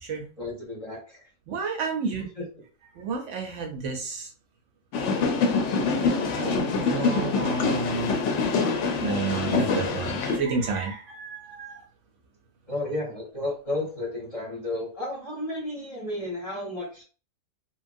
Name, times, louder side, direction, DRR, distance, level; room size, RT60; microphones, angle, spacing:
voice 1, 0.4-1.2 2.4-2.5 12.7-17.0, left 1 dB, 35° left, -3 dB, 0.7 m, -32 dB
voice 2, 1.5-2.2 3.0-4.3 6.3-8.2 9.0-11.8, right 4 dB, 70° right, 3 dB, 0.8 m, -30 dB
sound 1, 4.9-10.4, left 4 dB, 65° left, 0.8 m, -25 dB
3.0 x 2.3 x 2.5 m, 0.37 s
omnidirectional pair, 1.5 m